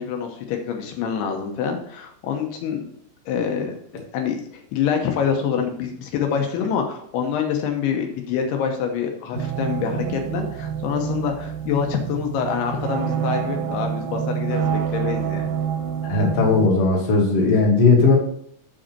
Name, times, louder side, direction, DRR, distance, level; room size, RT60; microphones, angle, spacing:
voice 1, 0.0-2.8 3.3-3.8 4.1-15.5, left 7 dB, 85° left, 3 dB, 2.9 m, -26 dB
sound 1, 9.3-16.7, right 8 dB, 80° right, 2.1 m, -27 dB
voice 2, 16.0-18.2, left 3 dB, 50° left, -1 dB, 2.0 m, -17 dB
7.2 x 5.1 x 4.3 m, 0.66 s
omnidirectional pair, 4.7 m